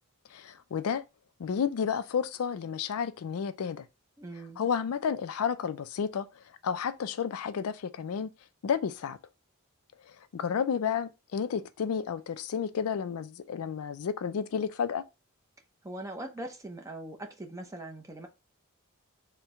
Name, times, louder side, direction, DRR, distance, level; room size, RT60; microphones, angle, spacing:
voice 1, 0.3-1.0 1.4-3.9 4.6-6.3 6.6-8.3 8.6-9.2 10.3-15.0, left 7 dB, 75° left, 0.4 m, -31 dB
voice 2, 4.2-4.6 15.8-18.3, right 1 dB, 15° right, 0.6 m, -41 dB
4.3 x 2.1 x 3.5 m
head